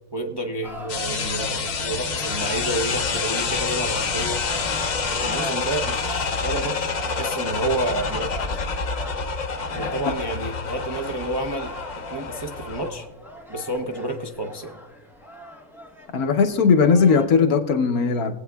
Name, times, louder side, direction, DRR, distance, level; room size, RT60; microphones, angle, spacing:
voice 1, 0.1-4.4 5.2-8.3 9.7-13.1 13.5-14.8, right 1 dB, 30° right, 2 dB, 0.5 m, -30 dB
sound 1, 0.6-17.3, equal, ahead, 0.9 m, -40 dB
sound 2, 0.9-12.9, left 4 dB, 50° left, 0.5 m, -27 dB
voice 2, 16.1-18.3, left 5 dB, 80° left, 6 dB, 1.4 m, -18 dB
21.0 x 8.3 x 2.3 m, 1.1 s
omnidirectional pair, 1.5 m